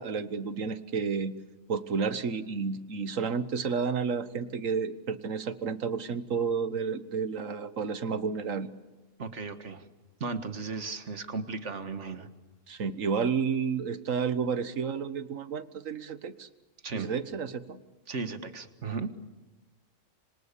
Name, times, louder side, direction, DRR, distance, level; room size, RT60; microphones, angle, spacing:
voice 1, 0.0-1.3 1.7-8.7 12.7-16.5 16.9-17.8, right 5 dB, 85° right, 12 dB, 1.6 m, -31 dB
voice 2, 9.2-9.8 10.2-12.3 16.8-17.1 18.1-19.1, right 4 dB, 65° right, 9 dB, 2.0 m, -35 dB
26.5 x 25.5 x 8.4 m, 1.1 s
omnidirectional pair, 1.3 m